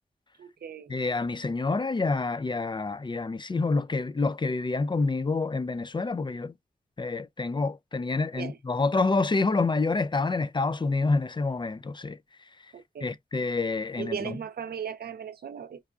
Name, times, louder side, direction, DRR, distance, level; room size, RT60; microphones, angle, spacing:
voice 1, 0.4-0.9 8.4-8.6 12.7-13.1 14.0-15.8, right 7 dB, 80° right, 0.6 m, -37 dB
voice 2, 0.9-6.5 7.0-12.2 13.0-14.4, left 3 dB, 30° left, 0.4 m, -27 dB
4.6 x 2.2 x 2.4 m
cardioid pair, 45°, 16 cm